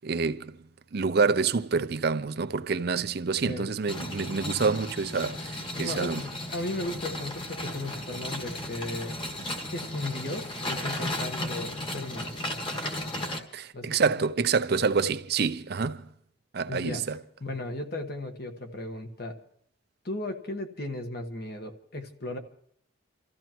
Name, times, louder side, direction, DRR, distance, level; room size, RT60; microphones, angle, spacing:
voice 1, 0.0-0.6 0.9-6.2 13.5-16.0 16.5-17.2, right 5 dB, 50° right, 0.5 m, -27 dB
sound 1, 3.9-13.4, left 1 dB, 25° left, 1.5 m, -35 dB
voice 2, 5.6-9.1 9.7-12.3 13.7-14.1 16.7-17.0 17.4-19.4 20.0-22.4, left 2 dB, 50° left, 1.3 m, -36 dB
29.5 x 14.0 x 3.0 m
head